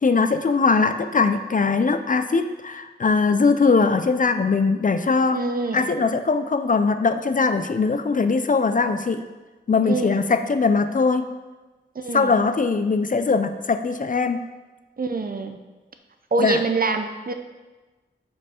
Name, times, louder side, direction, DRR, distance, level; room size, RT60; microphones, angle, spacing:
voice 1, 0.0-5.4 5.7-9.2 9.7-11.3 12.1-14.4 16.4-16.6, left 4 dB, 45° left, 9 dB, 0.4 m, -21 dB
voice 2, 5.3-5.9 9.9-10.2 12.0-12.4 15.0-15.6 16.3-17.3, right 3 dB, 50° right, 7 dB, 0.5 m, -25 dB
4.7 x 4.7 x 4.3 m, 1.2 s
wide cardioid pair, 45°, 19 cm